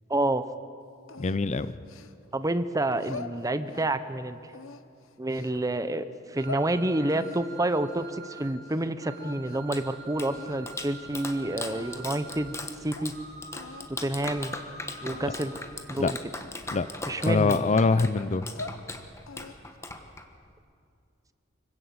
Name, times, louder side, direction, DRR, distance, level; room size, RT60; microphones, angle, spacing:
voice 1, 0.1-0.4 2.3-4.4 5.2-6.0 6.3-12.6 12.8-13.1 13.9-14.5 15.0-15.5 15.9-16.2 17.1-17.6, right 1 dB, 15° right, 12 dB, 0.7 m, -28 dB
sound 1, 1.1-2.4 2.9-4.0 4.5-5.6 6.1-6.7 7.1-8.9 9.1-9.8 10.2-10.6 11.3-11.4 11.7-12.2 12.6-12.7 13.0-13.1 13.5-13.9 14.3-14.5 15.0-15.4 15.9-16.2 16.7-17.9 18.3-18.8 19.3-19.8, left 4 dB, 90° left, 0.9 m, -44 dB
voice 2, 1.2-1.7 16.0-16.1 16.7-16.9 17.3-18.4, left 3 dB, 35° left, 14 dB, 0.5 m, -24 dB
sound 2, 6.4-8.5 9.0-12.6 13.1-13.8 14.3-15.6, right 4 dB, 50° right, 4.2 m, -46 dB
Clapping, 9.4-20.5, left 2 dB, 15° left, 1.3 m, -40 dB
25.0 x 16.5 x 8.0 m, 2.5 s
head